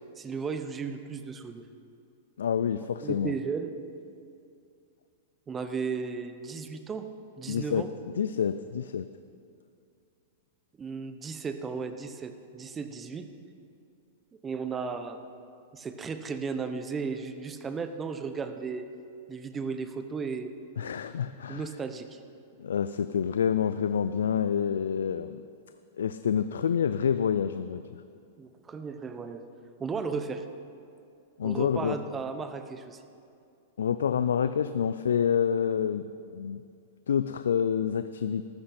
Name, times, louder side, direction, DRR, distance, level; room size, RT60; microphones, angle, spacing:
voice 1, 0.2-1.7 3.0-3.8 5.5-7.1 7.4-7.9 10.8-13.3 14.4-15.2 15.7-18.9 19.3-20.5 21.5-22.2 28.4-29.4 29.8-30.4 31.4-33.0, right 5 dB, 20° right, 8 dB, 0.9 m, -35 dB
voice 2, 2.4-3.4 7.5-7.9 8.2-9.1 20.8-21.6 22.6-25.4 26.0-27.8 31.4-32.0 33.8-36.0 36.3-36.6 37.1-38.5, left 8 dB, 85° left, 12 dB, 0.3 m, -27 dB
14.0 x 13.0 x 4.3 m, 2.5 s
hypercardioid pair, 120°, 0 cm